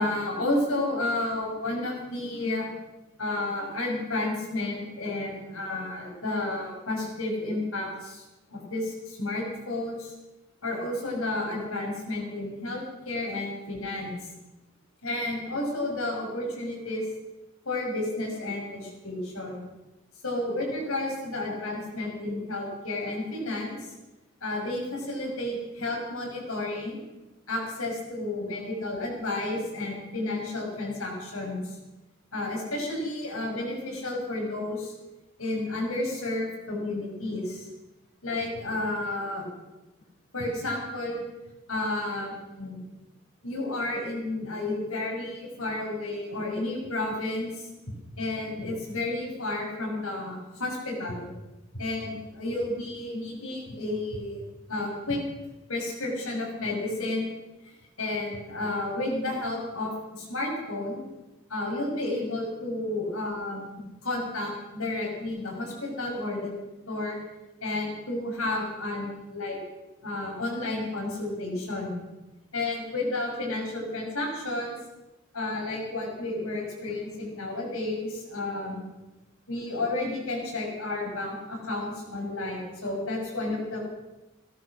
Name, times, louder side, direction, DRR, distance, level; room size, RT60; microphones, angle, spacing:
voice 1, 0.0-2.7 3.2-8.2 8.5-10.1 10.6-14.1 15.0-17.0 17.6-19.7 20.2-23.9 24.4-27.0 27.5-31.8 32.3-34.9 35.4-37.7 38.2-39.5 40.3-41.2 41.7-42.8 43.4-51.3 51.7-54.4 54.7-55.2 55.7-57.3 57.6-61.0 61.5-63.7 64.0-66.5 66.9-67.2 67.6-69.6 70.0-72.0 72.5-74.8 75.3-78.8 79.5-83.8, left 2 dB, 85° left, -1 dB, 6.1 m, -31 dB
16.5 x 13.0 x 6.3 m, 1.1 s
head